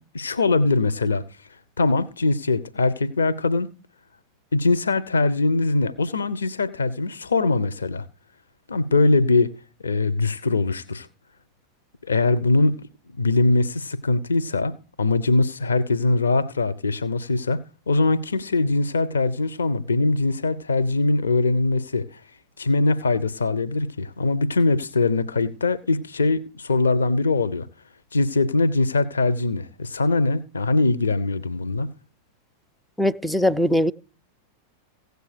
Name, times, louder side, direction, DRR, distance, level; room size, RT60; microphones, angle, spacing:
voice 1, 0.1-1.2 1.8-3.7 4.5-8.0 8.7-9.5 9.8-11.1 12.0-12.9 13.2-17.6 17.9-22.2 22.6-27.7 28.1-31.9, left 3 dB, 70° left, 0.8 m, -22 dB
voice 2, 33.0-33.9, equal, ahead, 0.5 m, -20 dB
16.0 x 8.1 x 5.0 m
figure-of-eight pair, 90°, 0 cm